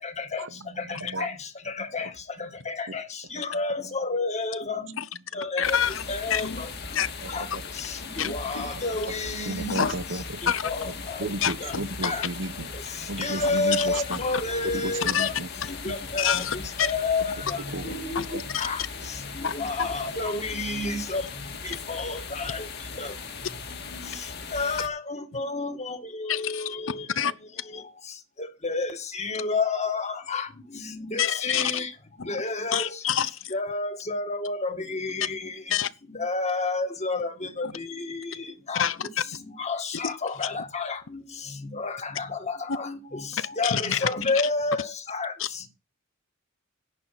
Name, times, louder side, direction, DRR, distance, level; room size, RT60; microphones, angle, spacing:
voice 1, 0.4-1.4 1.8-2.1 2.9-3.0 3.3-3.4 3.8-3.9 7.2-7.6 8.2-8.8 9.4-10.5 10.8-12.7 13.1-14.2 14.6-15.5 15.8-16.0 16.3-16.5 17.7-18.0 18.2-18.4 19.0-19.1 19.9-20.3, right 2 dB, 65° right, 1.1 m, -35 dB
voice 2, 1.8-2.1 2.7-3.0 3.3-4.8 5.4-5.8 6.1-6.7 7.3-7.4 8.2-9.9 10.6-11.2 11.6-11.7 12.0-12.2 13.2-15.3 15.9-16.4 16.8-18.2 18.6-18.8 19.4-21.2 21.9-22.6 24.5-27.0 28.6-30.5 30.9-31.9 32.3-32.9 33.5-35.4 36.1-37.3 37.6-37.7 38.7-38.9 39.6-41.0 41.8-43.2 43.6-45.3, left 3 dB, 35° left, 1.8 m, -29 dB
voice 3, 5.6-6.0 6.3-6.6 6.9-7.1 8.2-8.7 9.7-9.9 10.5-10.6 11.4-11.5 12.0-12.1 13.8-14.0 15.1-15.3 16.2-16.9 18.2-18.3 18.5-18.7 19.4-19.5 19.8-19.9 26.3-26.7 27.2-27.3 31.2-31.8 32.7-33.5 35.7-35.9 38.7-39.0 40.0-40.1 42.7-42.8 43.6-44.1 45.4-45.7, left 8 dB, 75° left, 0.8 m, -26 dB
sound 1, 5.6-24.9, left 4 dB, 55° left, 2.3 m, -38 dB
11.0 x 8.8 x 5.8 m
head